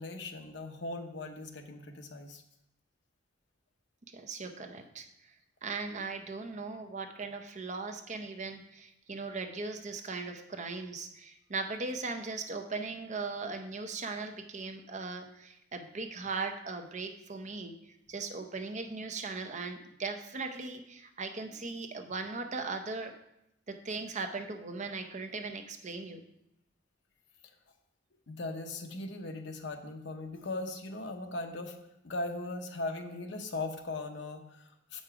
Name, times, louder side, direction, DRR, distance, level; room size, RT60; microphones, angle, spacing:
voice 1, 0.0-2.4 28.3-31.8 32.0-35.0, left 2 dB, 70° left, 5 dB, 0.9 m, -39 dB
voice 2, 4.1-5.1 5.6-17.7 18.1-23.1 23.7-26.2, right 3 dB, 40° right, 6 dB, 0.7 m, -38 dB
7.9 x 5.3 x 4.8 m, 0.81 s
head